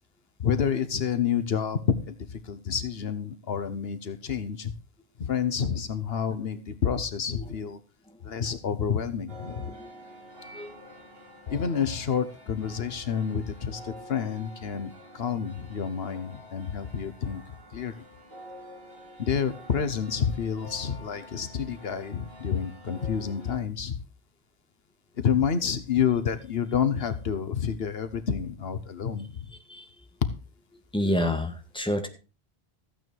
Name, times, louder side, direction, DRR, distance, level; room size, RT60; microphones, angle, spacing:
voice 1, 0.4-4.7 5.2-7.8 8.2-9.7 11.5-17.4 17.7-17.9 19.2-24.0 25.2-29.4, left 7 dB, 75° left, 11 dB, 1.3 m, -29 dB
sound 1, 9.3-23.6, equal, 65° right, 4.0 m, -48 dB
voice 2, 10.4-10.7 29.7-29.9 30.9-32.1, left 1 dB, 5° left, 5 dB, 1.8 m, -29 dB
14.0 x 9.1 x 4.6 m, 0.33 s
omnidirectional pair, 1.0 m